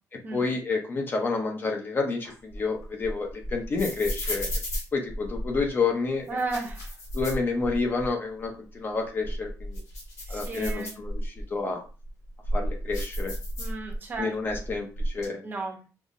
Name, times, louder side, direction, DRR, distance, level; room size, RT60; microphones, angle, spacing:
voice 1, 0.3-4.5 4.9-6.4 7.1-9.8 10.3-11.8 12.5-13.3 14.2-15.5, left 4 dB, 30° left, 2 dB, 0.6 m, -29 dB
sound 1, 2.2-5.7 6.3-8.1 8.4-8.5 9.1-11.4 12.0-14.2 14.5-15.3, equal, 55° left, 1.2 m, -33 dB
voice 2, 6.3-7.0 10.3-10.9 13.6-14.6 15.4-15.8, right 3 dB, 30° right, 2 dB, 0.7 m, -34 dB
5.4 x 2.0 x 2.5 m, 0.33 s
wide cardioid pair, 170°, 6 cm